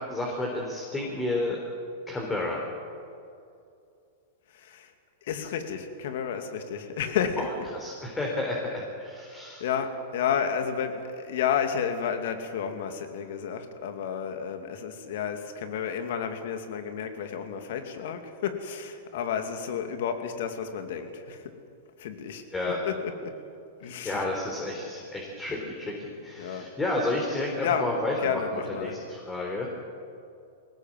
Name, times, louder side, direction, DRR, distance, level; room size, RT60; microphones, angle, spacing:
voice 1, 0.0-1.6 2.1-2.6 7.4-7.5 7.7-9.6 22.5-22.8 23.8-29.7, left 2 dB, 15° left, -1 dB, 3.9 m, -31 dB
voice 2, 4.5-4.9 5.2-7.5 9.6-21.5 22.0-22.4 22.8-23.0 23.2-23.3 23.8-24.2 26.4-26.7 27.6-27.9 28.2-29.0, left 7 dB, 65° left, 6 dB, 2.6 m, -31 dB
22.0 x 18.5 x 7.7 m, 2.5 s
hypercardioid pair, 110°, 0 cm